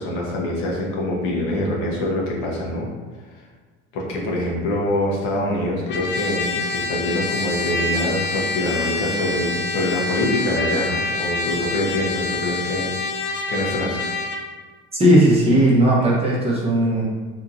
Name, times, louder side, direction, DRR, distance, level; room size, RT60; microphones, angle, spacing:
voice 1, 0.0-2.9 3.3-3.4 3.9-12.9 13.5-14.0, left 1 dB, 85° left, -4 dB, 0.9 m, -24 dB
Trumpet, 5.9-14.4, left 3 dB, 40° left, 0.4 m, -26 dB
voice 2, 15.0-17.0, right 1 dB, 20° right, -5 dB, 0.7 m, -16 dB
2.9 x 2.6 x 2.5 m, 1.4 s
cardioid pair, 115°, 29 cm